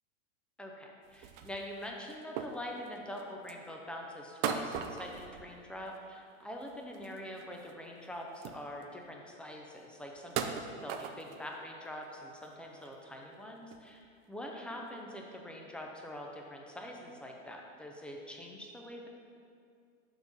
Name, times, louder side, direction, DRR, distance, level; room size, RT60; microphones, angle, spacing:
voice 1, 0.6-19.1, equal, 5° left, 0 dB, 0.5 m, -44 dB
sound 1, 1.0-3.7 4.4-6.1 6.4-7.7 8.0-8.1 8.3-9.0 9.5-9.6 10.2-11.5 12.0-12.1 12.4-12.9 13.3-13.4 13.7-13.9 14.7-14.8, right 7 dB, 45° right, 0.5 m, -40 dB
5.9 x 3.7 x 5.4 m, 2.3 s
hypercardioid pair, 100°, 39 cm